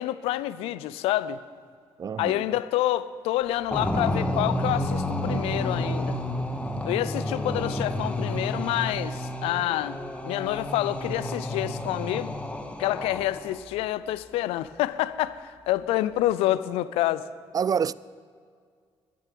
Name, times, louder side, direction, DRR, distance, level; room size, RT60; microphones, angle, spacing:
voice 1, 0.0-1.4 2.2-6.2 6.8-12.3 12.8-17.3, left 14 dB, 80° left, 0.5 m, -28 dB
voice 2, 2.0-2.4 17.5-17.9, right 7 dB, 40° right, 0.3 m, -26 dB
sound 1, 3.7-13.6, left 1 dB, 10° left, 1.6 m, -30 dB
12.5 x 10.5 x 7.6 m
supercardioid pair, 55°, 10 cm